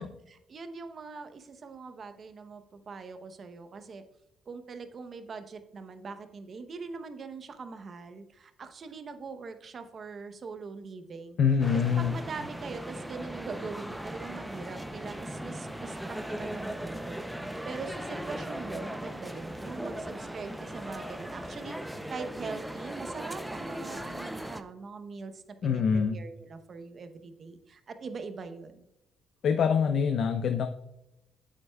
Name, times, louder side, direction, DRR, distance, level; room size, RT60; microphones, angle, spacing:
voice 1, 0.0-4.0 4.5-11.4 11.7-28.8, right 4 dB, 50° right, 9 dB, 0.8 m, -42 dB
voice 2, 11.4-12.2 25.6-26.2 29.4-30.7, left 6 dB, 65° left, 8 dB, 0.5 m, -25 dB
sound 1, 11.6-24.6, right 1 dB, 5° right, 0.6 m, -38 dB
8.6 x 7.4 x 2.3 m, 0.90 s
cardioid pair, 90°, 0 cm